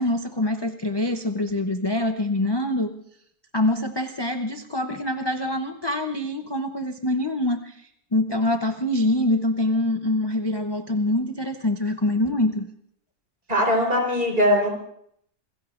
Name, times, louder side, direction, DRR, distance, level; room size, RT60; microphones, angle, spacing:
voice 1, 0.0-2.9 3.5-12.7, left 1 dB, 25° left, 6 dB, 0.5 m, -25 dB
voice 2, 13.5-14.7, equal, 40° right, 1 dB, 4.4 m, -20 dB
27.5 x 21.0 x 2.5 m, 0.69 s
omnidirectional pair, 1.5 m